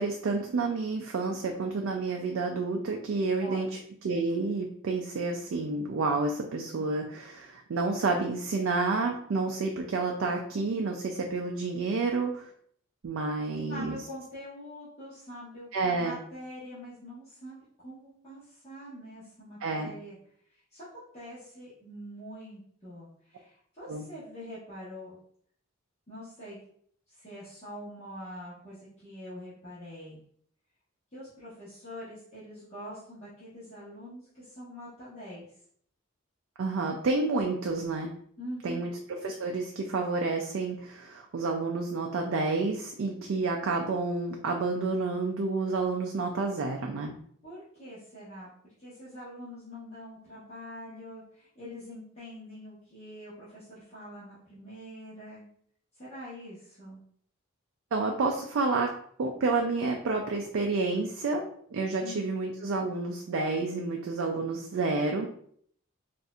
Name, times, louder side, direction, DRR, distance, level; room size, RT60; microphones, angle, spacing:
voice 1, 0.0-3.7 4.0-12.5 13.0-14.0 15.7-16.1 19.6-19.9 23.9-24.1 36.6-38.1 38.6-38.9 39.2-47.1 57.9-58.9 59.2-61.5 61.7-65.3, right 3 dB, 60° right, 2 dB, 0.4 m, -29 dB
voice 2, 3.4-3.7 13.7-20.2 20.5-25.2 26.1-26.6 27.1-30.2 31.1-35.5 38.4-38.9 47.4-48.5 48.8-55.4 55.9-57.0 62.0-62.3, equal, 30° left, -11 dB, 1.1 m, -44 dB
4.1 x 2.5 x 2.3 m, 0.63 s
head